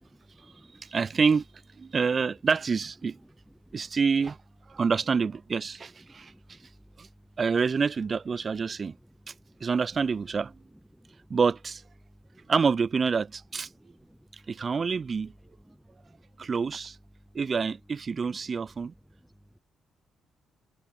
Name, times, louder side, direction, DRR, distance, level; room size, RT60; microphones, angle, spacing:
voice 1, 0.2-0.9 1.9-2.0 3.2-4.0 6.0-7.4 8.7-9.7 10.7-11.4 12.0-12.5 13.7-14.7 15.6-16.5 17.2-17.6 18.4-18.6 19.0-19.6, equal, 5° right, 1.0 m, -58 dB
voice 2, 0.9-1.4 1.8-3.2 3.7-4.4 4.7-6.3 7.0-7.1 7.4-8.9 9.6-10.5 11.3-11.8 12.5-13.7 14.5-15.3 16.4-17.0 17.3-18.9, right 5 dB, 40° right, 0.4 m, -27 dB
cardioid pair, 90°, 0 cm